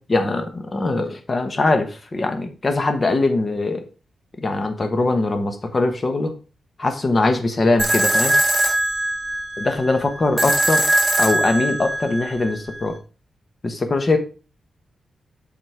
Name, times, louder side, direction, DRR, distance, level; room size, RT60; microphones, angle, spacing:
voice 1, 0.1-3.8 4.4-6.3 6.8-8.3 9.6-10.9 11.2-13.0 13.6-14.2, left 2 dB, 35° left, 7 dB, 1.1 m, -21 dB
sound 1, 7.8-12.8, right 1 dB, 10° right, 1.9 m, -21 dB
7.6 x 4.2 x 4.7 m, 0.36 s
cardioid pair, 105°, 0 cm